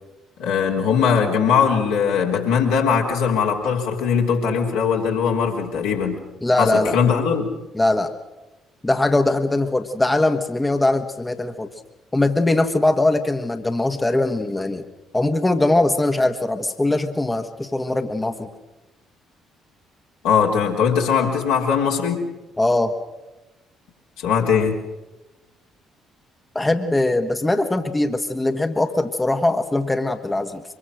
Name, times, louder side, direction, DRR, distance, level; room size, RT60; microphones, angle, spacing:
voice 1, 0.4-6.2 6.6-7.5 20.2-22.2 24.2-24.8, left 6 dB, 70° left, -1 dB, 3.6 m, -20 dB
voice 2, 6.4-7.0 7.7-8.1 8.8-11.7 12.1-14.8 15.1-18.5 22.6-22.9 26.5-30.6, left 2 dB, 15° left, 6 dB, 1.5 m, -21 dB
24.5 x 22.5 x 6.4 m, 1.1 s
figure-of-eight pair, 45°, 0 cm